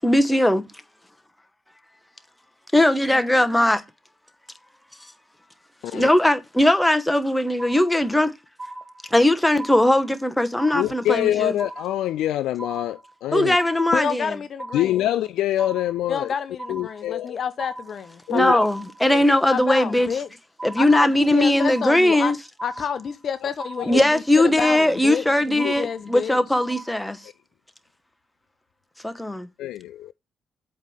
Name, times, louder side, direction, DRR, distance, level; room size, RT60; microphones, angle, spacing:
voice 1, 0.0-0.6 2.7-3.8 5.9-8.3 9.1-11.5 13.3-14.3 18.3-20.1 20.6-22.4 23.8-27.2 29.0-29.5, left 1 dB, 5° left, 1.1 m, -19 dB
sound 1, 7.6-8.3 8.6-9.3 9.6-10.3 10.6-11.3 11.6-12.3 12.6-13.3 13.6-14.3 14.6-15.3 15.6-16.3 16.6-17.3 17.6-18.3 18.6-19.3 19.6-20.3 20.6-21.3 21.6-22.3 22.6-23.3 23.6-24.3 24.6-25.3 25.6-26.3 26.6-27.3, right 2 dB, 30° right, 1.6 m, -39 dB
voice 2, 10.7-13.6 14.7-16.3 16.7-17.4 18.3-18.6 19.0-19.2 23.4-23.5 23.9-24.0 25.6-25.7 29.6-30.1, left 13 dB, 65° left, 0.3 m, -25 dB
voice 3, 13.9-15.0 16.1-18.7 19.5-20.3 20.8-22.3 22.6-26.4, left 7 dB, 50° left, 0.8 m, -29 dB
8.0 x 3.3 x 5.6 m
figure-of-eight pair, 45°, 0 cm